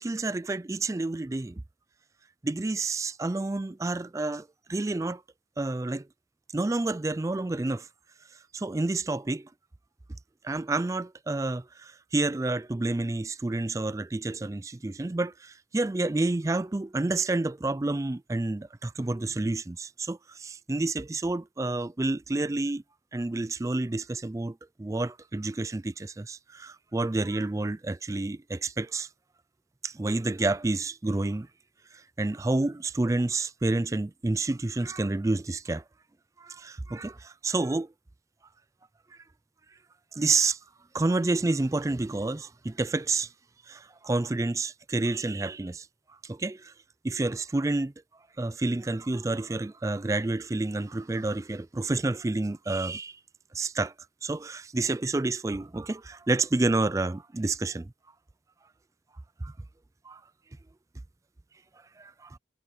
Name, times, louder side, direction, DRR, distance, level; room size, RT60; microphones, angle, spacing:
voice 1, 0.0-1.6 2.4-5.2 5.6-6.1 6.5-7.9 8.5-9.5 10.4-22.8 23.1-29.1 29.8-31.5 31.9-35.8 36.4-37.9 40.1-40.6 40.9-43.3 43.7-45.9 46.2-46.7 47.0-47.9 48.4-53.2 53.5-53.9 54.2-57.9 59.4-59.5 60.1-60.2 62.0-62.4, right 2 dB, 20° right, 0.3 m, -29 dB
head